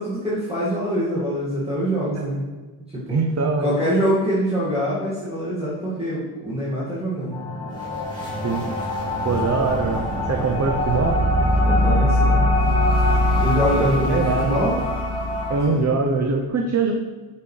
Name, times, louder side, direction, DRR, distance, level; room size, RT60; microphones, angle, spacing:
voice 1, 0.0-2.4 2.9-3.2 3.6-7.4 11.6-12.5 13.4-14.8 15.3-15.4 15.7-15.9, equal, 15° right, -10 dB, 2.0 m, -24 dB
voice 2, 3.1-3.7 8.4-8.6 9.2-11.2 13.8-14.5 15.5-16.9, right 4 dB, 40° right, 2 dB, 0.7 m, -23 dB
sound 1, 7.3-15.6, left 1 dB, 10° left, 2.1 m, -22 dB
11.5 x 5.8 x 3.3 m, 1.3 s
wide cardioid pair, 175°, 42 cm